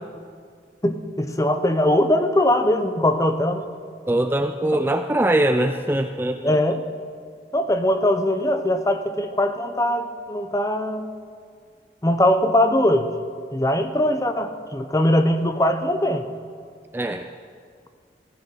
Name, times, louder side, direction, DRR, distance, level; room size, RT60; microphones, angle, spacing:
voice 1, 0.8-3.6 6.4-6.8 7.5-11.1 12.0-13.1 13.5-16.3, left 1 dB, 20° left, 8 dB, 0.7 m, -21 dB
voice 2, 4.1-6.6 16.9-17.3, right 1 dB, 10° right, 6 dB, 0.3 m, -22 dB
17.0 x 13.5 x 4.9 m, 2.1 s
head